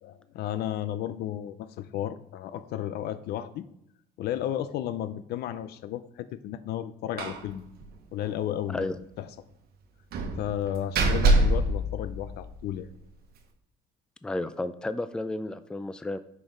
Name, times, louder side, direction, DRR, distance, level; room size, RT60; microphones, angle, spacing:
voice 1, 0.0-3.7 4.2-7.6 8.1-9.3 10.4-12.9, left 11 dB, 70° left, 13 dB, 0.4 m, -33 dB
Slam, 7.2-7.5 7.8-7.9 8.2-8.3 10.1-12.7, right 2 dB, 65° right, 1.1 m, -25 dB
voice 2, 14.2-16.2, left 2 dB, 5° left, 12 dB, 0.4 m, -32 dB
6.0 x 5.2 x 3.7 m, 0.76 s
cardioid pair, 110°, 17 cm